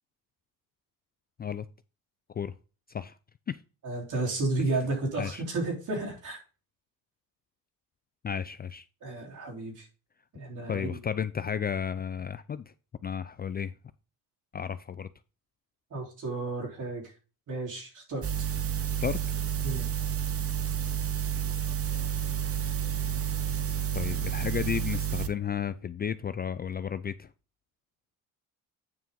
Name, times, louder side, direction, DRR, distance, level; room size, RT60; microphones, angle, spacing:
voice 1, 3.8-6.4 9.0-9.9 10.3-11.0 15.9-17.0 17.5-18.3 19.6-19.9, right 2 dB, 55° right, 3.5 m, -32 dB
voice 2, 8.2-8.9 10.7-12.6 13.0-13.7 14.5-15.1 19.0-19.2 23.9-27.3, left 8 dB, 25° left, 0.4 m, -33 dB
sound 1, 18.2-25.3, right 9 dB, 40° right, 1.0 m, -30 dB
Wind instrument woodwind instrument, 21.8-26.0, right 3 dB, 75° right, 5.3 m, -51 dB
9.2 x 5.7 x 3.7 m
cardioid pair, 95°, 37 cm